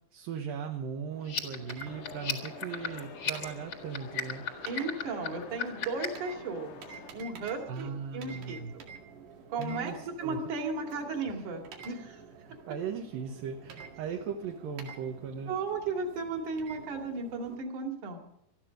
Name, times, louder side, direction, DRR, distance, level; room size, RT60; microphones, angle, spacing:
voice 1, 0.1-4.4 7.7-8.7 9.6-10.4 12.4-15.5, right 6 dB, 65° right, 2 dB, 2.7 m, -38 dB
sound 1, 1.1-17.6, right 6 dB, 85° right, 4.3 m, -50 dB
sound 2, 1.2-6.3, left 7 dB, 45° left, 1.8 m, -35 dB
sound 3, 1.9-7.1, left 6 dB, 80° left, 3.7 m, -48 dB
voice 2, 4.6-6.8 7.1-8.6 9.5-12.2 15.5-18.2, right 3 dB, 50° right, 3 dB, 3.4 m, -35 dB
21.0 x 13.0 x 5.1 m, 0.72 s
omnidirectional pair, 4.7 m